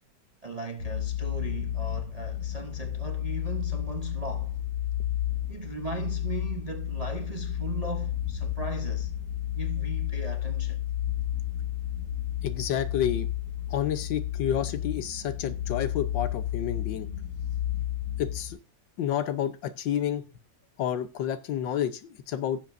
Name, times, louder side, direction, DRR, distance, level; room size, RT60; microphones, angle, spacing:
voice 1, 0.4-4.6 5.5-9.1 9.5-10.8, right 3 dB, 75° right, 0.3 m, -38 dB
sound 1, 0.8-18.5, left 12 dB, 55° left, 3.5 m, -32 dB
voice 2, 12.4-13.3 13.7-17.1 18.2-18.6 19.0-20.2 20.8-22.6, left 10 dB, 80° left, 1.5 m, -30 dB
17.0 x 7.4 x 2.6 m
omnidirectional pair, 2.0 m